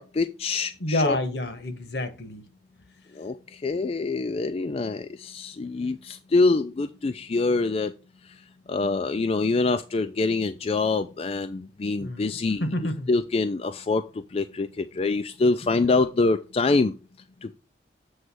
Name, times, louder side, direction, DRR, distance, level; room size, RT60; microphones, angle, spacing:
voice 1, 0.0-1.2 3.2-3.4 3.6-7.9 8.7-12.7 13.1-14.0 14.3-16.9 17.4-17.5, left 3 dB, 35° left, 0.4 m, -25 dB
voice 2, 0.8-2.4 12.0-12.3 12.6-13.1, left 1 dB, 70° left, 1.2 m, -28 dB
7.8 x 3.2 x 6.1 m
head